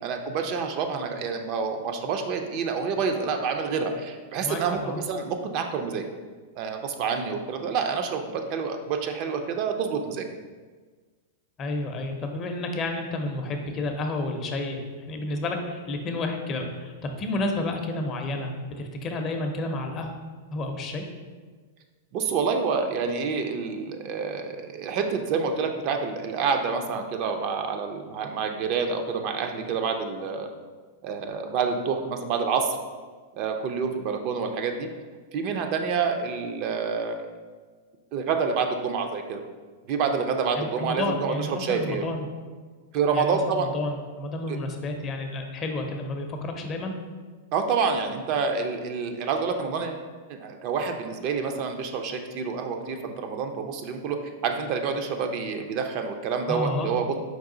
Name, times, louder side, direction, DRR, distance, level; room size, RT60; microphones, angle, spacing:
voice 1, 0.0-6.0 6.6-10.3 22.1-30.5 31.0-32.8 33.4-34.9 35.3-37.2 38.1-39.4 39.9-42.1 42.9-43.7 44.5-44.6 47.5-50.0 50.3-54.2 54.4-57.1, right 5 dB, 45° right, 5 dB, 0.4 m, -28 dB
voice 2, 4.4-5.0 11.6-20.2 20.5-21.0 40.6-42.3 43.1-46.9 56.5-56.9, left 2 dB, 30° left, 4 dB, 0.5 m, -31 dB
4.7 x 2.3 x 3.8 m, 1.4 s
hypercardioid pair, 120°, 0 cm